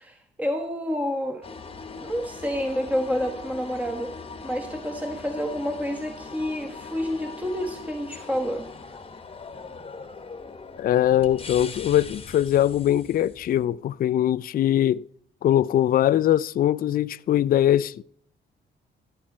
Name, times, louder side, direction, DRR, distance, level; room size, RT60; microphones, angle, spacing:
voice 1, 0.0-1.5 2.0-8.7, equal, 5° right, 1.2 m, -29 dB
sound 1, 1.4-13.7, left 4 dB, 30° left, 1.2 m, -40 dB
voice 2, 10.8-15.0 15.4-18.0, left 11 dB, 45° left, 0.4 m, -21 dB
14.0 x 8.7 x 4.3 m
cardioid pair, 90°, 20 cm